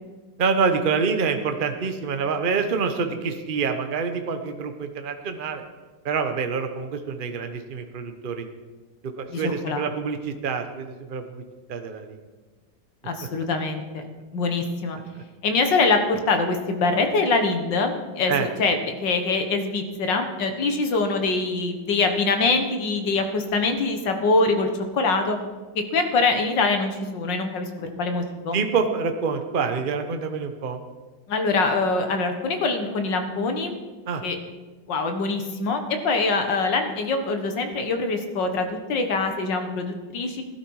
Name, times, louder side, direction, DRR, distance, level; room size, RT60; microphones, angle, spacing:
voice 1, 0.4-5.6 6.0-8.4 9.2-11.4 11.7-12.2 15.1-15.2 18.3-18.5 28.5-30.8 34.1-34.2, right 5 dB, 35° right, 6 dB, 0.9 m, -26 dB
voice 2, 9.3-9.9 13.0-14.1 14.3-15.0 15.4-25.4 25.8-28.6 31.3-33.7 34.2-34.4 34.9-40.4, left 3 dB, 65° left, 6 dB, 2.0 m, -24 dB
16.5 x 12.0 x 4.8 m, 1.3 s
omnidirectional pair, 2.1 m